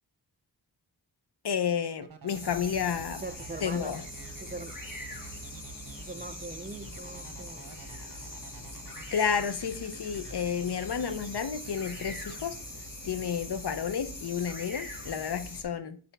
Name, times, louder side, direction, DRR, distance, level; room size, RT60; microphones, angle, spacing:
voice 1, 1.4-3.2 3.6-4.0 9.1-12.6 13.0-16.0, left 7 dB, 80° left, 0.7 m, -31 dB
sound 1, 2.0-12.5, right 6 dB, 60° right, 1.0 m, -50 dB
sound 2, 2.3-15.6, left 1 dB, 55° left, 2.1 m, -42 dB
voice 2, 3.1-4.0 4.4-4.7 6.0-7.7, right 3 dB, 25° right, 0.5 m, -41 dB
6.8 x 5.3 x 4.5 m
wide cardioid pair, 65°, 39 cm